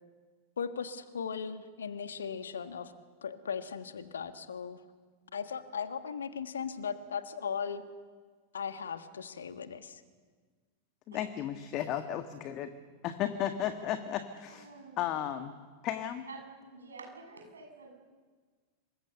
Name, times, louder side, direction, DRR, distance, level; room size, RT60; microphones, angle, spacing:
voice 1, 0.6-2.9 3.2-4.8 5.3-7.8 8.5-10.0, left 6 dB, 70° left, 10 dB, 1.5 m, -38 dB
voice 2, 11.1-12.7 13.0-14.7 15.0-15.5 15.8-16.2, left 10 dB, 35° left, 8 dB, 1.6 m, -34 dB
voice 3, 14.5-15.0 16.3-16.4 16.7-17.9, right 4 dB, 70° right, 2 dB, 7.5 m, -48 dB
27.5 x 24.5 x 6.9 m, 1.5 s
figure-of-eight pair, 90°, 0 cm